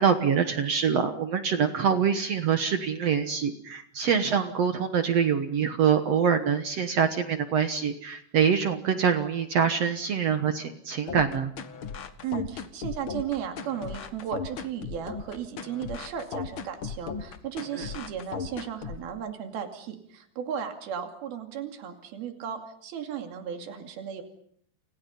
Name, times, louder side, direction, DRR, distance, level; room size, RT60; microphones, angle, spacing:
voice 1, 0.0-11.5 17.8-17.9, right 7 dB, 60° right, 8 dB, 1.9 m, -25 dB
sound 1, 11.1-19.1, left 6 dB, 55° left, 1.4 m, -36 dB
voice 2, 12.2-24.2, right 8 dB, 80° right, 5 dB, 4.4 m, -35 dB
29.0 x 28.5 x 5.5 m, 0.65 s
omnidirectional pair, 4.3 m